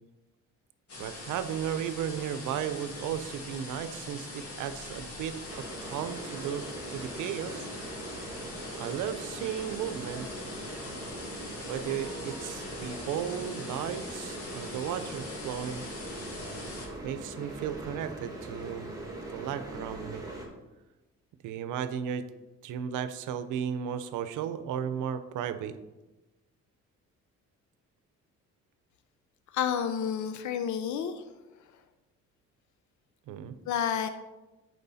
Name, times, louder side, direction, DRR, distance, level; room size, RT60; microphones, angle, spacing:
sound 1, 0.9-16.9, left 2 dB, 50° left, 2.4 m, -42 dB
voice 1, 1.0-7.7 8.8-10.3 11.7-15.8 17.0-19.0 19.3-20.2 21.4-22.3 22.6-25.8 33.3-33.5, right 9 dB, 90° right, 11 dB, 0.7 m, -35 dB
sound 2, 5.5-20.5, right 1 dB, 10° right, 2.3 m, -41 dB
voice 2, 29.5-31.2 33.7-34.1, left 8 dB, 70° left, 9 dB, 0.7 m, -30 dB
10.0 x 4.7 x 4.1 m, 1.1 s
cardioid pair, 90°, 30 cm